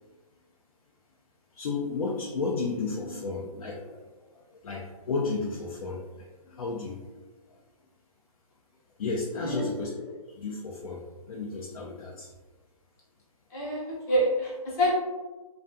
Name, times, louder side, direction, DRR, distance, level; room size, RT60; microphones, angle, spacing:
voice 1, 1.5-7.0 9.0-12.3, left 4 dB, 70° left, -3 dB, 0.5 m, -33 dB
voice 2, 13.5-15.0, equal, 25° left, -5 dB, 0.7 m, -27 dB
2.4 x 2.3 x 2.5 m, 1.2 s
hypercardioid pair, 145°, 19 cm